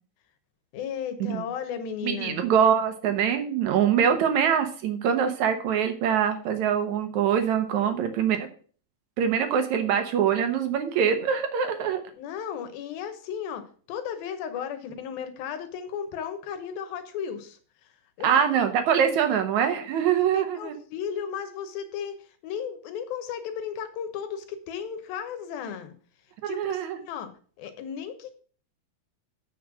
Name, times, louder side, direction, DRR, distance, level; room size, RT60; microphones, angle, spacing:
voice 1, 0.7-2.4 12.2-17.9 18.2-18.3 20.1-25.9 26.4-27.3 27.6-28.4, left 8 dB, 80° left, 9 dB, 2.8 m, -35 dB
voice 2, 2.0-8.5 9.2-12.0 18.2-20.8 26.4-27.0, right 8 dB, 65° right, 7 dB, 2.0 m, -24 dB
7.9 x 6.3 x 6.1 m, 0.43 s
omnidirectional pair, 4.4 m